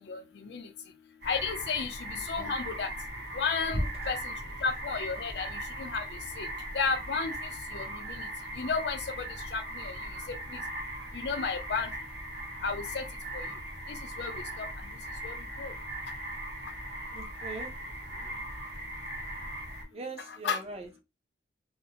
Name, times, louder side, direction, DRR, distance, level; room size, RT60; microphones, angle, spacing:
voice 1, 0.1-0.7 1.2-2.9 3.3-4.3 4.6-6.5 6.7-8.3 8.6-10.0 10.3-10.6 11.1-11.9 12.6-13.0 13.3-13.5 13.9-14.7 15.2-15.7 20.3-20.6, left 5 dB, 75° left, 0.5 m, -33 dB
sound 1, 1.2-19.8, right 1 dB, 75° right, 1.0 m, -39 dB
voice 2, 17.1-17.7 19.9-21.0, right 3 dB, 35° right, 0.5 m, -42 dB
2.5 x 2.1 x 2.7 m
head